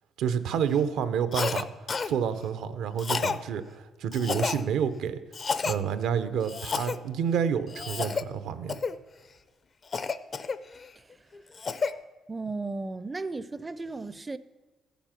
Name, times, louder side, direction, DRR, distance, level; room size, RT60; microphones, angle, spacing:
voice 1, 0.2-5.2 5.6-8.7, right 7 dB, 85° right, 0.7 m, -29 dB
Cough, 1.3-1.6 1.9-2.1 3.0-3.4 4.1-4.6 5.3-5.8 6.5-7.0 7.7-8.2 8.7-9.0 9.9-10.9 11.3-11.9, left 5 dB, 40° left, 0.5 m, -30 dB
voice 2, 12.3-14.4, right 3 dB, 20° right, 0.4 m, -35 dB
14.5 x 7.1 x 5.8 m
cardioid pair, 90°, 0 cm